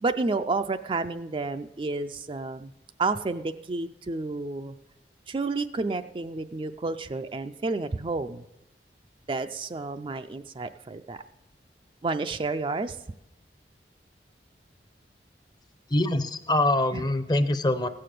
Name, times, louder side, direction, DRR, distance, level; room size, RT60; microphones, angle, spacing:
voice 1, 0.0-2.7 3.0-4.7 5.3-8.4 9.3-11.2 12.0-13.0 16.9-17.0, right 3 dB, 30° right, 9 dB, 0.4 m, -30 dB
voice 2, 15.9-17.9, left 1 dB, 25° left, 11 dB, 0.6 m, -24 dB
16.5 x 7.6 x 6.7 m, 0.89 s
head